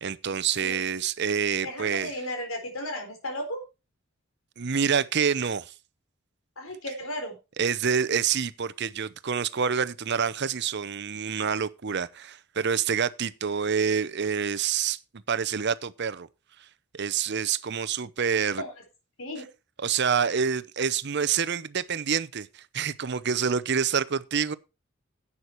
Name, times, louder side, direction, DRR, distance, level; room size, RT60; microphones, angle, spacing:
voice 1, 0.0-2.1 4.6-5.7 7.6-15.0 15.3-16.3 16.9-18.6 19.8-24.5, right 7 dB, 55° right, 0.7 m, -27 dB
voice 2, 1.6-3.6 6.6-7.4 18.6-18.7 19.2-19.5, left 1 dB, 90° left, 3.9 m, -34 dB
11.0 x 8.6 x 4.5 m
head